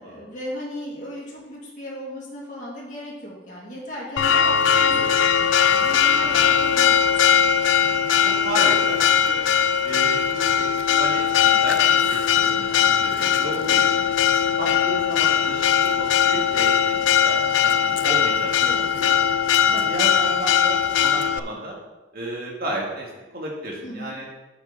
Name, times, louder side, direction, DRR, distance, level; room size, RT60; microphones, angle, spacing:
voice 1, 0.0-7.5 18.6-18.9 23.8-24.1, left 1 dB, 40° left, -6 dB, 2.7 m, -36 dB
Church bell, 4.2-21.4, left 8 dB, 85° left, 0.4 m, -20 dB
voice 2, 8.2-9.4 9.8-14.0 14.6-18.5 18.9-19.1 19.6-21.8 22.1-23.1 23.3-24.3, right 1 dB, 50° right, -2 dB, 2.4 m, -33 dB
8.6 x 7.2 x 4.2 m, 1.1 s
head